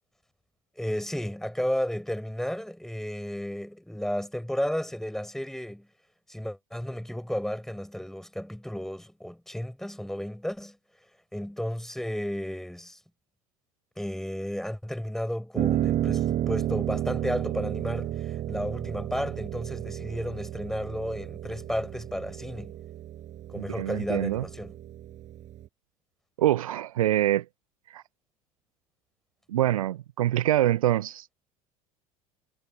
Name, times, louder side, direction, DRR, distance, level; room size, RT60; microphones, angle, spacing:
voice 1, 0.8-5.9 6.3-10.8 11.3-13.0 14.0-22.8 23.5-24.8, equal, ahead, 5.1 m, -33 dB
Piano, 15.5-25.7, right 12 dB, 40° right, 6.8 m, -32 dB
voice 2, 23.6-24.4 26.4-27.4 27.9-28.0 29.5-31.3, right 13 dB, 70° right, 0.5 m, -25 dB
figure-of-eight pair, 70°, 19 cm